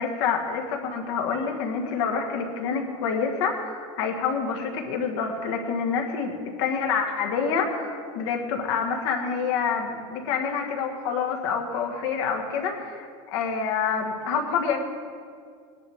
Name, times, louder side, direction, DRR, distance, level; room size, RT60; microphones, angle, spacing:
voice 1, 0.0-14.8, left 6 dB, 65° left, 2 dB, 1.7 m, -27 dB
19.5 x 10.5 x 3.6 m, 2.1 s
supercardioid pair, 170°, 16 cm